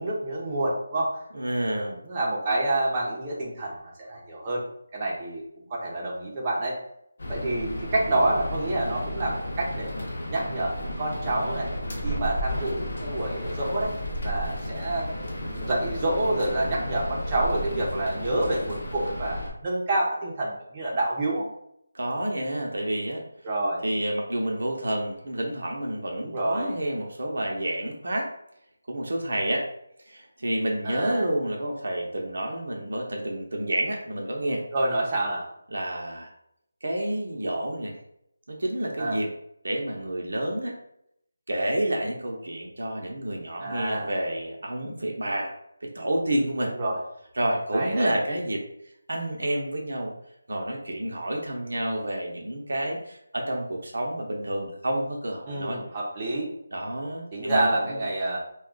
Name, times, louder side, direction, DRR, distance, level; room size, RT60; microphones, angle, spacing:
voice 1, 0.0-1.1 1.9-4.6 4.9-5.4 5.7-6.8 7.3-9.9 10.3-11.7 12.0-13.9 14.2-21.4 23.4-23.8 26.2-26.8 30.8-31.3 34.7-35.5 39.0-39.2 43.6-44.1 46.8-47.0 47.7-48.1 55.5-56.5 57.3-58.4, right 2 dB, 25° right, -4 dB, 0.7 m, -28 dB
voice 2, 1.3-2.0 21.9-23.2 23.8-28.3 28.9-29.7 30.1-34.6 35.7-36.3 36.8-37.9 38.5-39.3 39.6-40.8 41.5-45.5 45.8-46.7 47.3-48.6 49.1-50.1 50.5-55.8 56.7-58.0, right 1 dB, 70° right, 0 dB, 0.7 m, -29 dB
sound 1, 7.2-19.5, equal, 60° left, 0.8 m, -33 dB
2.3 x 2.2 x 3.7 m, 0.75 s
figure-of-eight pair, 160°, 0 cm